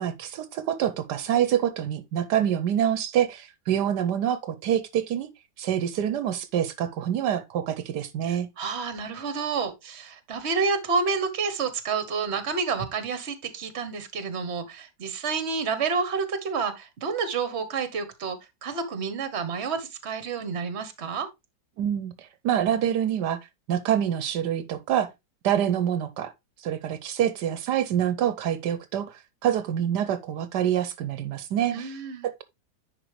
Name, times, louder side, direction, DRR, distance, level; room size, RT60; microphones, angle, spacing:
voice 1, 0.0-5.3 5.6-8.5 21.8-23.4 23.7-25.1 25.4-26.3 26.6-31.9 32.2-32.4, right 10 dB, 80° right, 1.3 m, -26 dB
voice 2, 8.3-21.3 31.7-32.3, right 5 dB, 45° right, 1.3 m, -29 dB
10.0 x 4.6 x 3.2 m
omnidirectional pair, 1.8 m